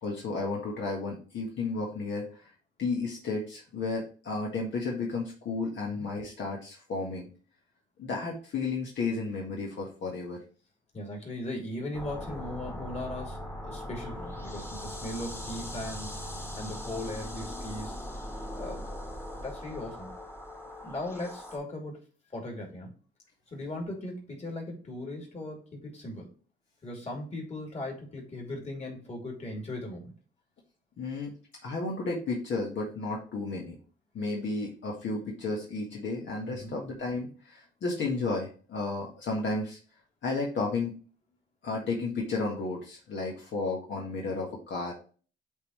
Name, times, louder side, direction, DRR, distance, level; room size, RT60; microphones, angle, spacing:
voice 1, 0.0-2.5 2.8-7.3 8.0-10.4 31.0-31.3 31.6-33.8 34.1-39.8 40.2-40.9 41.6-44.9, left 3 dB, 65° left, -1 dB, 1.6 m, -33 dB
voice 2, 10.9-16.2 16.6-18.0 18.5-18.9 19.4-20.1 20.8-22.0 22.3-22.9 23.5-26.3 26.8-30.2 36.5-36.8, left 1 dB, 35° left, 0 dB, 2.8 m, -38 dB
sound 1, 11.9-21.6, left 1 dB, 10° left, 1.5 m, -40 dB
8.1 x 3.8 x 3.1 m, 0.38 s
cardioid pair, 90°, 20 cm